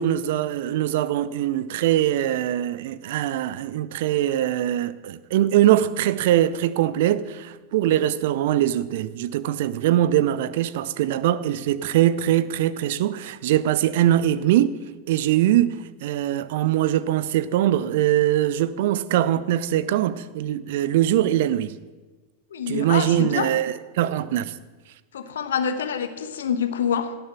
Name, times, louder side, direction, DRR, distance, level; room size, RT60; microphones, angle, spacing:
voice 1, 0.0-14.8 15.1-21.8 22.7-24.5, right 12 dB, 55° right, 0.6 m, -22 dB
voice 2, 22.5-23.5 25.1-27.2, left 7 dB, 65° left, 1.2 m, -26 dB
17.5 x 7.0 x 7.1 m
figure-of-eight pair, 90°, 0 cm